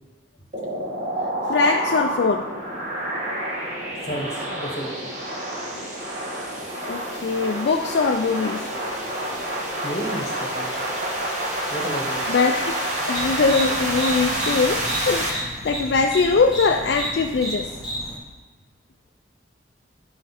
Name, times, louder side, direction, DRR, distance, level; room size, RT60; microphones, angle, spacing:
sound 1, 0.5-15.3, right 1 dB, 40° right, 1.4 m, -28 dB
voice 1, 1.5-2.5 6.8-8.6 12.3-12.7 13.1-17.7, left 4 dB, 65° left, 3 dB, 0.4 m, -22 dB
voice 2, 4.0-5.1 9.8-10.9 11.7-12.2, equal, 35° left, 0 dB, 1.4 m, -32 dB
sound 2, 13.1-18.2, right 1 dB, ahead, 1.8 m, -32 dB
10.0 x 5.0 x 4.2 m, 1.2 s
head